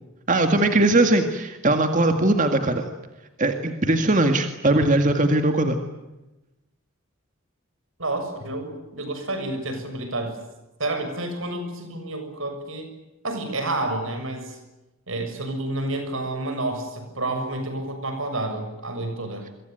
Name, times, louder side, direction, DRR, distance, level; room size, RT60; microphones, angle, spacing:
voice 1, 0.3-2.9 3.4-5.8, right 2 dB, 40° right, 6 dB, 2.0 m, -20 dB
voice 2, 8.0-10.4 10.8-12.9 13.2-14.6 15.1-19.4, right 2 dB, 75° right, 7 dB, 6.9 m, -29 dB
26.5 x 23.5 x 9.3 m, 1.0 s
head